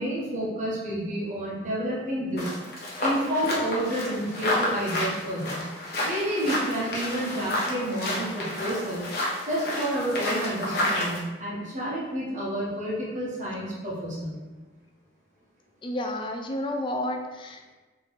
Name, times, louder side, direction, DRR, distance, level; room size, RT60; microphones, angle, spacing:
voice 1, 0.0-2.5 3.0-5.6 6.0-9.1 9.4-14.4, equal, 45° right, -6 dB, 1.3 m, -29 dB
sound 1, 2.4-11.2, left 1 dB, 60° left, 1.0 m, -30 dB
voice 2, 15.8-17.7, left 1 dB, 30° left, 4 dB, 0.4 m, -31 dB
4.0 x 3.4 x 3.2 m, 1.2 s
head